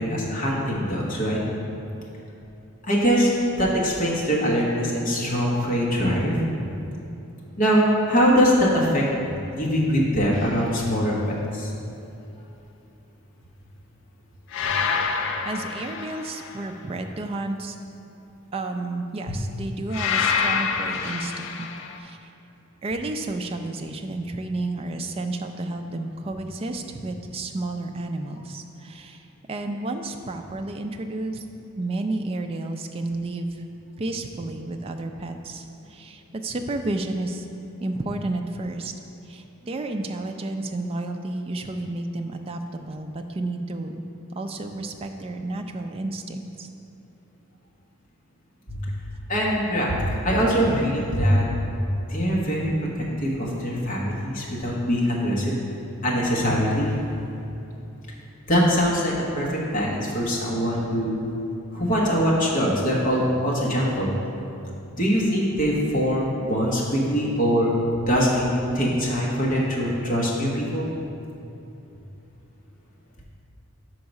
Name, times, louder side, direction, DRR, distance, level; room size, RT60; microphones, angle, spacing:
voice 1, 0.0-1.4 2.9-3.3 3.6-6.4 7.6-9.0 9.5-11.2 11.5-11.7 48.7-48.9 49.3-51.4 52.1-52.7 53.2-55.6 56.0-57.3 58.5-61.2 61.7-64.1 64.9-68.5 68.7-70.9, equal, 35° left, -4 dB, 1.1 m, -22 dB
sound 1, 10.3-10.7 14.5-16.7 19.9-22.0, left 5 dB, 55° left, 0.4 m, -27 dB
voice 2, 15.5-17.8 18.5-21.7 22.0-22.2 22.8-31.4 31.8-33.6 34.0-37.5 37.8-38.9 39.2-43.9 44.3-46.7, right 2 dB, 25° right, 5 dB, 0.3 m, -31 dB
5.8 x 4.7 x 5.3 m, 2.8 s
head